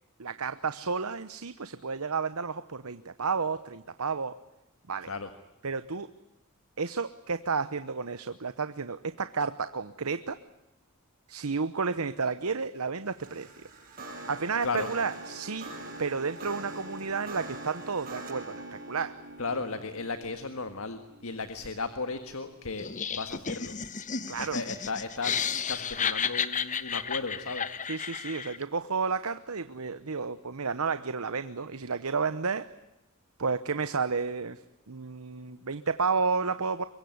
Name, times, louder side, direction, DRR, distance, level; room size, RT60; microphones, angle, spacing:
voice 1, 0.2-4.4 4.9-5.1 5.6-6.1 6.8-10.4 11.3-13.5 14.3-15.7 16.0-19.2 24.3-24.6 27.9-32.7 33.4-34.6 34.9-36.8, right 5 dB, 80° right, 12 dB, 1.0 m, -31 dB
sound 1, 13.1-22.4, right 2 dB, 45° right, 6.7 m, -44 dB
voice 2, 19.4-23.8 24.4-27.7, left 4 dB, 65° left, 9 dB, 1.7 m, -35 dB
Laughter, 22.8-28.6, left 7 dB, 35° left, 1.1 m, -32 dB
24.5 x 22.5 x 9.5 m, 0.90 s
head